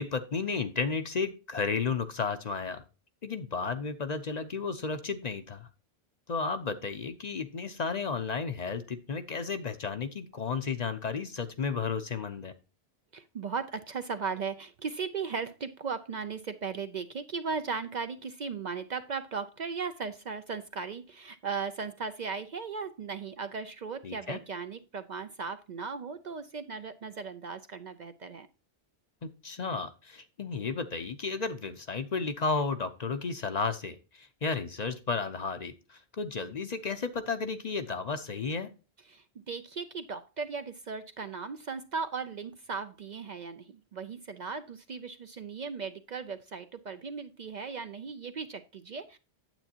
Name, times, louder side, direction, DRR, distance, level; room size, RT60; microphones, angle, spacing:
voice 1, 0.0-2.8 3.2-5.7 6.3-12.5 24.0-24.4 29.2-38.7, left 4 dB, 45° left, 9 dB, 0.7 m, -33 dB
voice 2, 13.1-28.5 39.1-49.2, right 5 dB, 55° right, 9 dB, 0.5 m, -37 dB
9.0 x 7.9 x 2.8 m, 0.32 s
omnidirectional pair, 1.1 m